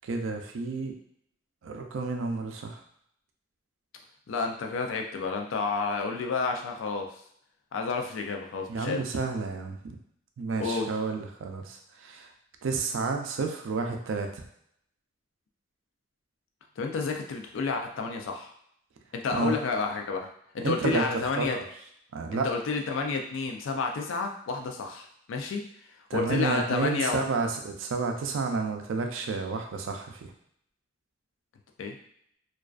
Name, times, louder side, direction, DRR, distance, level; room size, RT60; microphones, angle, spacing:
voice 1, 0.0-0.9 1.6-2.8 8.7-10.0 10.4-12.3 12.6-14.5 19.3-19.5 20.6-21.1 21.4-21.6 22.1-22.5 26.1-30.3, right 4 dB, 85° right, 4 dB, 0.4 m, -31 dB
voice 2, 4.3-7.1 7.7-9.0 10.6-10.9 16.8-18.5 19.1-20.3 20.5-21.6 22.3-27.2 31.8-32.0, left 4 dB, 85° left, 3 dB, 0.4 m, -30 dB
2.3 x 2.3 x 2.3 m, 0.70 s
head